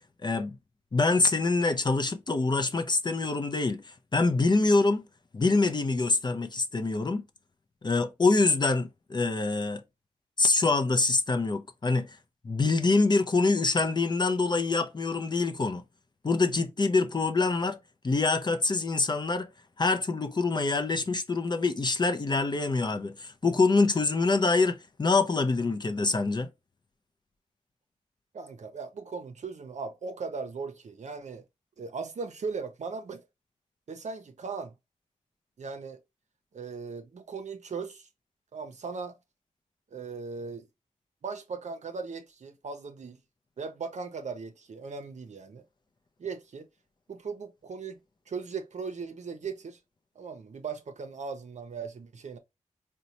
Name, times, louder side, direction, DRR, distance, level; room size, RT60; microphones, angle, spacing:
voice 1, 0.2-0.6 0.9-5.1 5.3-7.3 7.8-9.8 10.4-12.2 12.4-15.8 16.2-17.8 18.0-19.5 19.8-26.5, left 3 dB, 35° left, 0.5 m, -25 dB
voice 2, 28.3-31.4 31.8-33.3 33.9-34.7 35.6-36.0 36.5-38.1 38.5-39.2 39.9-40.7 41.2-43.2 43.6-45.6 46.2-46.7 47.1-48.0 48.3-49.8 50.2-52.4, right 5 dB, 65° right, 0.6 m, -38 dB
3.9 x 2.2 x 2.8 m
wide cardioid pair, 80°, 13 cm